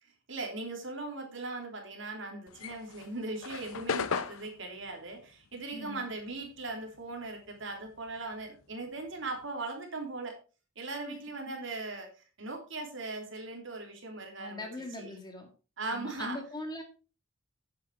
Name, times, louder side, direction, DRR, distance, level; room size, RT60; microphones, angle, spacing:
voice 1, 0.0-10.4 10.7-14.7 15.0-15.2 15.8-16.4, right 3 dB, 60° right, 3 dB, 3.2 m, -39 dB
sound 1, 2.5-7.2 7.5-9.5, left 5 dB, 80° left, 0.7 m, -38 dB
voice 2, 5.7-6.1 11.1-11.2 14.4-15.5 15.9-16.8, left 2 dB, 20° left, 4 dB, 2.0 m, -41 dB
10.5 x 7.7 x 4.6 m, 0.34 s
head